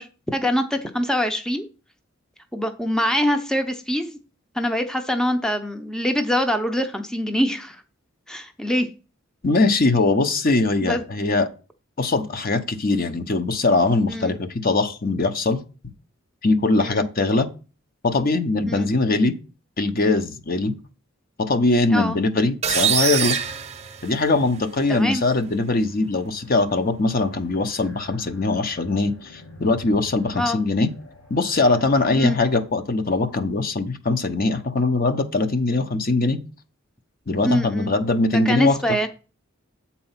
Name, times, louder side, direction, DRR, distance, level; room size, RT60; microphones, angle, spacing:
voice 1, 0.0-1.7 2.5-4.2 4.5-7.8 8.3-8.9 10.8-11.0 14.1-14.4 16.8-17.1 18.7-18.9 21.9-22.2 24.9-25.2 30.3-30.6 32.2-32.4 37.4-37.9 38.5-39.1, equal, 5° left, 0.6 m, -24 dB
voice 2, 9.4-11.5 12.0-15.6 16.4-17.5 18.0-19.4 19.8-20.7 21.4-23.4 24.0-30.9 31.3-36.4 37.3-38.8, left 3 dB, 50° left, 0.8 m, -21 dB
sound 1, 22.6-24.6, right 8 dB, 35° right, 0.7 m, -24 dB
sound 2, 25.8-33.0, left 1 dB, 80° left, 2.5 m, -47 dB
7.9 x 4.3 x 5.7 m
head